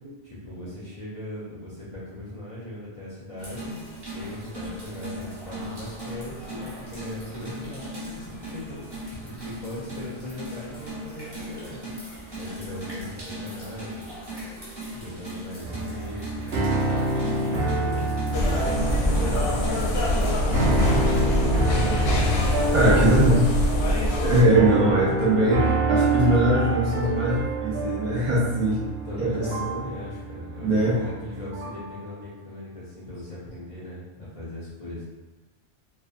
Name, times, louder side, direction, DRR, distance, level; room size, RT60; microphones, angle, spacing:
voice 1, 0.2-3.8 4.1-11.9 12.4-14.1 14.9-18.1 18.9-22.0 22.6-22.9 29.0-35.0, left 1 dB, 45° left, -7 dB, 0.5 m, -38 dB
sound 1, 3.4-21.2, equal, 25° right, 0.8 m, -38 dB
sound 2, 15.6-31.9, right 2 dB, 85° right, 0.9 m, -27 dB
sound 3, 18.3-24.4, left 1 dB, 85° left, 0.8 m, -23 dB
voice 2, 22.7-23.5 24.2-28.9 29.2-29.7 30.6-31.0, right 1 dB, 55° right, -6 dB, 0.6 m, -21 dB
2.6 x 2.2 x 2.4 m, 1.2 s
omnidirectional pair, 1.1 m